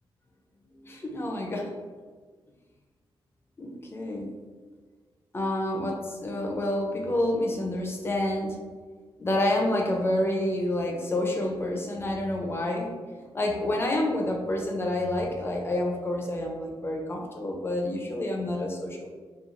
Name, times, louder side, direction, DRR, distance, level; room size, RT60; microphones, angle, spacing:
voice 1, 0.8-1.7 3.6-4.3 5.3-8.6 9.2-19.1, left 1 dB, 25° left, 1 dB, 0.4 m, -28 dB
2.9 x 2.2 x 2.5 m, 1.5 s
wide cardioid pair, 130°, 9 cm